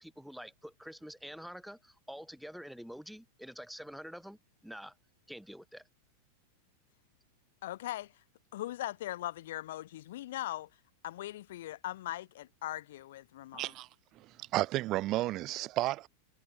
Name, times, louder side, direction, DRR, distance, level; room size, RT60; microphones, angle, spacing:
voice 1, 0.0-4.9 5.3-5.8, equal, ahead, 3.3 m, -47 dB
voice 2, 7.6-8.1 8.5-10.7 11.0-13.7, left 14 dB, 55° left, 1.3 m, -40 dB
voice 3, 13.5-13.9 14.2-16.1, right 17 dB, 35° right, 2.0 m, -32 dB
figure-of-eight pair, 90°, 0 cm